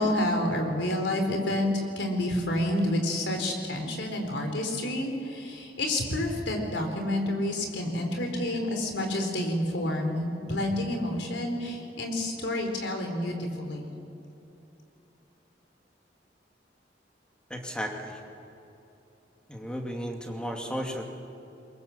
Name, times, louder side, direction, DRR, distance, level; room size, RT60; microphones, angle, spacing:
voice 1, 0.0-13.9, left 1 dB, 85° left, 3 dB, 4.2 m, -29 dB
voice 2, 17.5-18.2 19.5-21.0, equal, 5° left, 2 dB, 2.5 m, -34 dB
23.0 x 22.0 x 7.3 m, 2.9 s
head